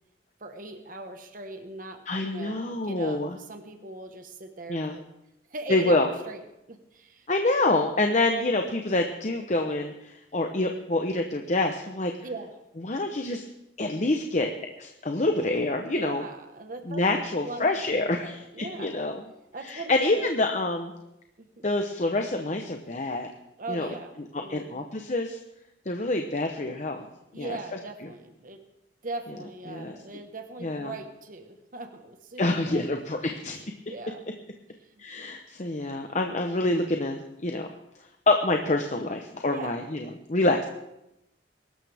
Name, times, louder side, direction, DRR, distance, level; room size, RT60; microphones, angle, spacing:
voice 1, 0.4-5.1 5.5-6.4 6.7-7.3 12.2-12.5 15.9-17.6 18.0-19.0 19.5-20.2 21.4-21.7 23.6-24.1 24.4-24.9 27.3-28.6 29.0-32.9 33.5-34.2 34.8-35.0 39.5-39.8, right 2 dB, 45° right, 6 dB, 1.3 m, -40 dB
voice 2, 2.1-3.4 4.7-5.0 5.7-6.1 7.3-12.1 12.8-13.5 13.8-14.5 14.8-16.2 16.9-19.2 19.6-20.9 21.6-23.3 23.7-23.9 24.5-25.4 25.9-27.1 27.4-27.6 29.7-29.9 30.6-30.9 32.4-33.6 35.0-37.7 38.3-40.7, left 2 dB, 40° left, 4 dB, 0.9 m, -26 dB
22.5 x 12.5 x 3.5 m, 0.90 s
head